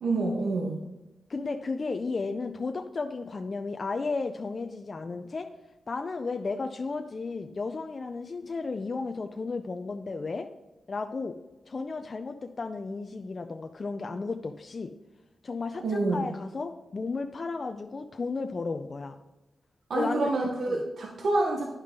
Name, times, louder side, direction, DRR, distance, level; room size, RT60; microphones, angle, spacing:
voice 1, 0.0-0.8 15.8-16.2 19.9-21.6, right 2 dB, 75° right, 0 dB, 1.1 m, -27 dB
voice 2, 1.3-5.5 5.9-10.5 10.9-11.3 11.7-14.9 15.4-19.2 19.9-20.3 20.7-20.8, left 4 dB, 50° left, 6 dB, 0.5 m, -33 dB
9.6 x 5.6 x 3.7 m, 1.0 s
cardioid pair, 60°, 0 cm